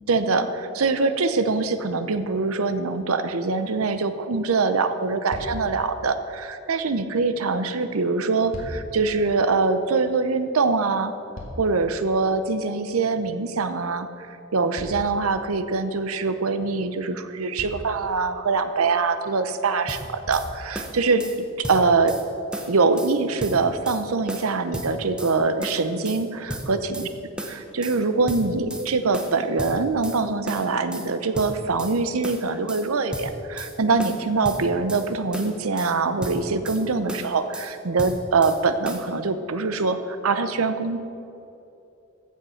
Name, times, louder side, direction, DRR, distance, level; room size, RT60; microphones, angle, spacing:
voice 1, 0.1-11.1 11.6-21.2 21.6-22.1 22.7-27.1 27.5-41.0, right 4 dB, 80° right, 10 dB, 0.7 m, -24 dB
sound 1, 5.3-5.8 8.1-9.0 10.9-12.0 14.7-15.7 16.9-17.0 17.5-18.0 19.4-19.5 20.2-20.7 21.5-21.6, left 1 dB, 70° left, 2.0 m, -38 dB
sound 2, 19.9-20.5 20.8-21.4 21.6-22.2 22.5-23.1 23.4-24.0 24.3-25.3 25.6-26.2 26.5-27.1 27.4-28.0 28.3-28.9 29.1-30.2 30.5-31.1 31.4-32.0 32.2-32.8 33.1-33.7 34.0-35.1 35.3-35.9 36.2-36.8 37.1-37.7 38.0-38.6 38.9-39.1, right 1 dB, 5° right, 0.8 m, -34 dB
14.5 x 6.4 x 5.7 m, 2.8 s
head